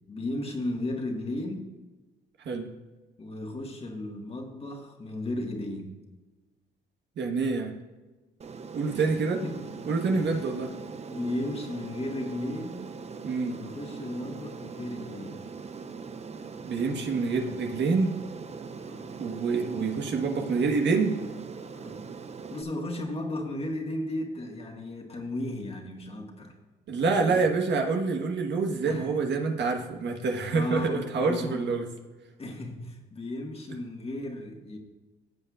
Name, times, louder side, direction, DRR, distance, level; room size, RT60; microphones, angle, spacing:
voice 1, 0.1-1.7 3.2-5.9 8.9-9.7 10.1-12.9 13.5-15.4 18.8-19.1 21.7-22.0 22.5-26.5 27.1-27.4 28.9-29.1 30.5-31.7 32.4-34.8, left 1 dB, 30° left, 2 dB, 1.6 m, -35 dB
voice 2, 7.2-7.7 8.7-9.4 9.9-10.7 13.2-13.6 16.7-18.2 19.2-21.2 26.9-31.8, right 4 dB, 60° right, 3 dB, 1.3 m, -27 dB
Aircraft, 8.4-22.6, right 5 dB, 35° right, 0.6 m, -41 dB
15.5 x 7.6 x 2.4 m, 1.2 s
cardioid pair, 90°, 20 cm